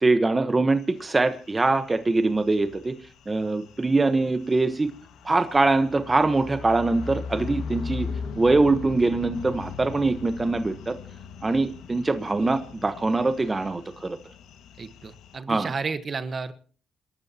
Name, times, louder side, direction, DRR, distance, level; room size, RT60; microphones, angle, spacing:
voice 1, 0.0-3.0 3.3-4.9 5.2-8.1 8.4-11.0 11.4-14.2 15.5-15.7, right 3 dB, 20° right, 10 dB, 1.2 m, -23 dB
sound 1, 0.8-15.4, left 6 dB, 80° left, 1.8 m, -40 dB
voice 2, 14.8-16.5, right 4 dB, 40° right, 12 dB, 1.3 m, -32 dB
28.0 x 12.5 x 2.9 m, 0.41 s
cardioid pair, 90°, 0 cm